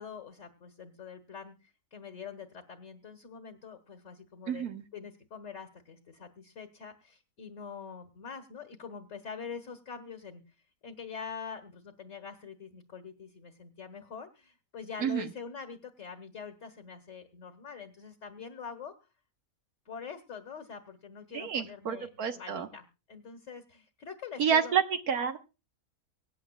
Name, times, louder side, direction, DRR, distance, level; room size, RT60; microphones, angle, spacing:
voice 1, 0.0-10.4 10.8-18.9 19.8-24.8, left 6 dB, 55° left, 7 dB, 1.7 m, -45 dB
voice 2, 4.5-4.8 15.0-15.3 21.3-22.7 24.4-25.4, right 7 dB, 85° right, 6 dB, 1.7 m, -29 dB
24.5 x 9.8 x 2.3 m, 0.30 s
omnidirectional pair, 1.6 m